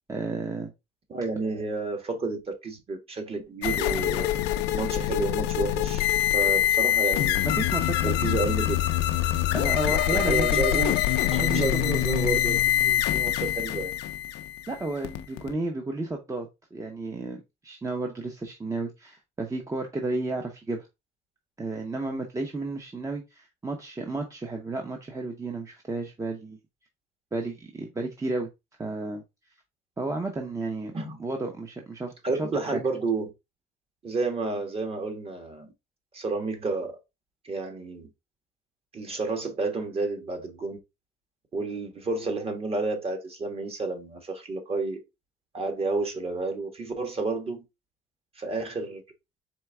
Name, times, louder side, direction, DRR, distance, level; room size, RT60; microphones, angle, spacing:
voice 1, 0.1-0.7 7.4-8.2 9.5-10.7 11.4-11.7 14.7-20.9 21.6-26.6 27.3-28.5 28.8-29.2 30.0-32.1 32.4-32.8, right 2 dB, 20° right, 0.8 m, -32 dB
voice 2, 1.1-4.3 4.7-6.1 6.3-7.4 8.0-8.8 10.1-11.0 11.3-13.9 30.9-31.2 32.2-33.3 34.0-35.7 36.1-37.0 37.4-38.1 38.9-40.8 41.5-45.0 45.5-47.6 48.4-49.0, right 3 dB, 35° right, 1.5 m, -30 dB
sound 1, 3.6-15.5, left 12 dB, 90° left, 0.5 m, -25 dB
4.6 x 3.4 x 3.4 m
cardioid pair, 110°, 17 cm